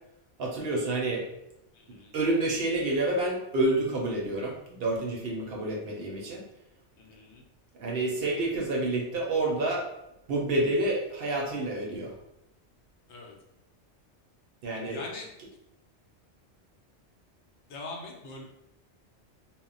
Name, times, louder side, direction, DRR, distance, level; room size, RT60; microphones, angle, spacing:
voice 1, 0.4-1.3 2.1-6.4 7.7-9.9 10.3-12.1 14.6-15.0, right 2 dB, 65° right, -1 dB, 0.7 m, -28 dB
voice 2, 1.7-2.1 7.0-7.4 13.1-13.3 14.9-15.3 17.7-18.4, left 3 dB, 70° left, 0 dB, 0.8 m, -42 dB
2.1 x 2.0 x 3.7 m, 0.87 s
omnidirectional pair, 1.2 m